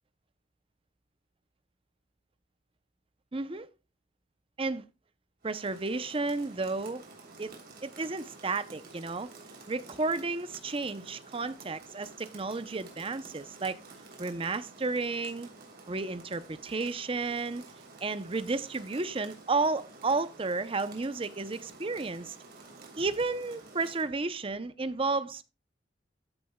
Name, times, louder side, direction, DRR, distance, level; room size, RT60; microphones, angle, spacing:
voice 1, 3.3-3.7 4.6-4.8 5.4-7.0 7.4-7.5 7.8-9.3 9.7-13.8 14.2-15.5 15.9-17.6 18.0-22.4 23.0-25.4, right 3 dB, 30° right, 0.6 m, -32 dB
Rain, 5.4-24.1, right 3 dB, 55° right, 3.2 m, -51 dB
14.0 x 6.8 x 2.3 m
head